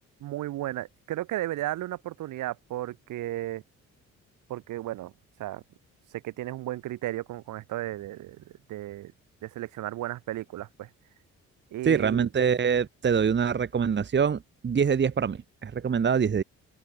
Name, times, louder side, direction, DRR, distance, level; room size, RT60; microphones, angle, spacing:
voice 1, 0.2-3.6 4.5-5.1 5.4-5.6 6.1-8.4 8.7-9.1 9.4-10.9 11.7-12.3, right 15 dB, 85° right, 6.2 m, -34 dB
voice 2, 11.8-16.4, right 6 dB, 35° right, 1.4 m, -25 dB
open air
cardioid pair, 90°, 30 cm